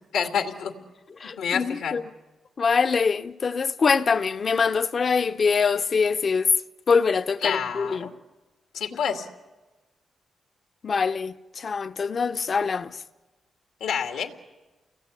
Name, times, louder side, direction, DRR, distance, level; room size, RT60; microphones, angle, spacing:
voice 1, 0.1-0.7 1.4-2.0 7.4-8.1 8.7-9.3 13.8-14.3, left 7 dB, 90° left, 2.4 m, -28 dB
voice 2, 1.2-2.0 2.6-6.5 6.9-8.1 10.8-13.0, left 5 dB, 50° left, 0.9 m, -24 dB
29.5 x 20.0 x 8.5 m
cardioid pair, 70°, 0 cm